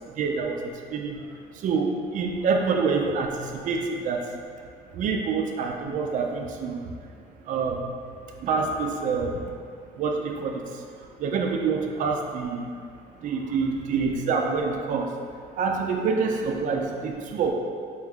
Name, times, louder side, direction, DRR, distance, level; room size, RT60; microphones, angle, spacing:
voice 1, 0.2-0.6 0.9-1.2 1.6-4.2 4.9-6.8 7.5-7.8 8.4-9.3 10.0-10.6 11.2-12.6 13.2-15.1 15.6-17.5, right 5 dB, 50° right, 2 dB, 0.4 m, -26 dB
3.5 x 2.6 x 3.4 m, 2.2 s
cardioid pair, 110°, 17 cm